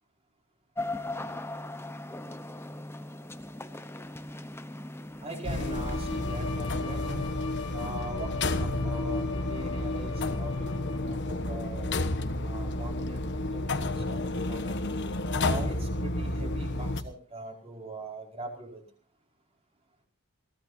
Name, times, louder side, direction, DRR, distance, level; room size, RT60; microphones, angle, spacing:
sound 1, 0.8-6.4, left 2 dB, 10° left, 0.9 m, -39 dB
voice 1, 5.2-7.3 7.7-11.9 12.4-14.7 15.4-18.8, right 2 dB, 25° right, 0 dB, 4.9 m, -42 dB
sound 2, 5.4-17.0, left 2 dB, 50° left, 1.3 m, -31 dB
Bowed string instrument, 5.5-11.3, left 6 dB, 90° left, 3.4 m, -41 dB
22.0 x 17.0 x 2.7 m, 0.41 s
head